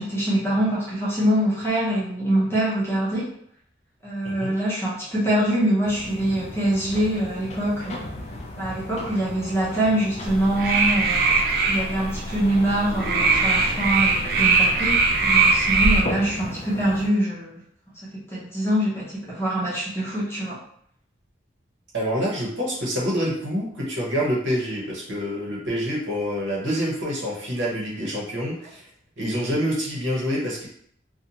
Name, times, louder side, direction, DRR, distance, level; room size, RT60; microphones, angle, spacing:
voice 1, 0.0-3.2 4.0-8.1 8.6-17.6 18.0-20.6, right 1 dB, 10° left, -7 dB, 0.7 m, -24 dB
sound 1, 5.8-17.1, left 1 dB, 35° left, 0.3 m, -36 dB
sound 2, 10.2-16.0, right 4 dB, 50° right, 0.4 m, -21 dB
voice 2, 21.9-28.8 29.2-30.7, equal, 70° right, -5 dB, 0.9 m, -26 dB
2.6 x 2.2 x 2.8 m, 0.66 s
head